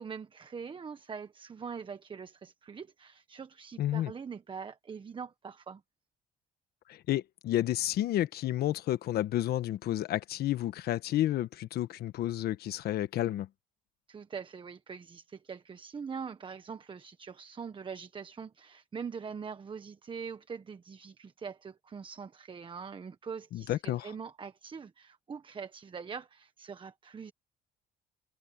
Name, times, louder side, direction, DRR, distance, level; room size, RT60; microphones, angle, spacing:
voice 1, 0.0-5.8 14.1-27.3, right 6 dB, 30° right, 1.2 m, -43 dB
voice 2, 3.8-4.1 6.9-13.5 23.5-24.0, left 13 dB, 70° left, 1.3 m, -31 dB
cardioid pair, 110°, 17 cm